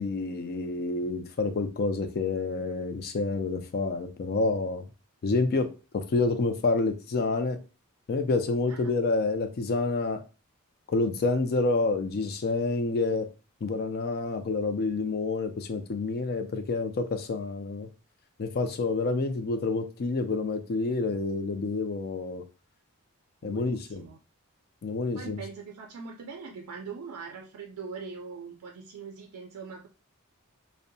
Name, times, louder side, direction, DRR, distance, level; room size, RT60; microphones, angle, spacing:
voice 1, 0.0-4.9 5.2-7.6 8.1-10.2 10.9-13.3 13.6-17.9 18.4-22.4 23.4-24.0 24.8-25.4, left 3 dB, 45° left, 0.4 m, -28 dB
voice 2, 23.4-24.2 25.1-29.9, right 5 dB, 90° right, 0.4 m, -42 dB
2.6 x 2.1 x 2.6 m
head